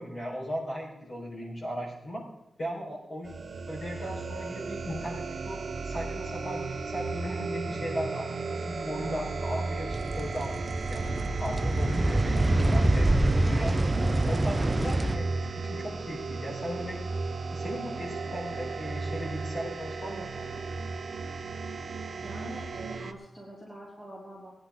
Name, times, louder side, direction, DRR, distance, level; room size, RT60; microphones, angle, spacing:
voice 1, 0.0-2.2 2.6-3.3 3.7-11.1 11.4-13.9 14.2-17.0 17.5-20.6, equal, 45° left, -5 dB, 4.5 m, -37 dB
sound 1, 3.2-23.1, right 4 dB, 50° right, 0.7 m, -35 dB
sound 2, 9.9-15.2, right 1 dB, 20° right, 0.6 m, -26 dB
voice 2, 22.2-24.5, equal, 10° left, -5 dB, 2.9 m, -44 dB
18.5 x 9.9 x 3.8 m, 0.92 s
wide cardioid pair, 170°, 0 cm